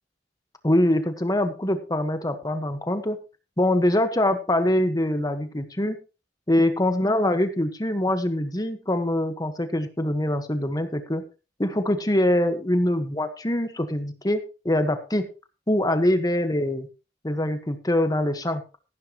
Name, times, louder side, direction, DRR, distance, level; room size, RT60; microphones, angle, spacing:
voice 1, 0.6-3.2 3.6-6.0 6.5-11.2 11.6-14.4 14.6-15.2 15.7-16.9 17.2-18.6, left 1 dB, 20° left, 8 dB, 1.4 m, -23 dB
14.5 x 11.5 x 3.0 m, 0.31 s
head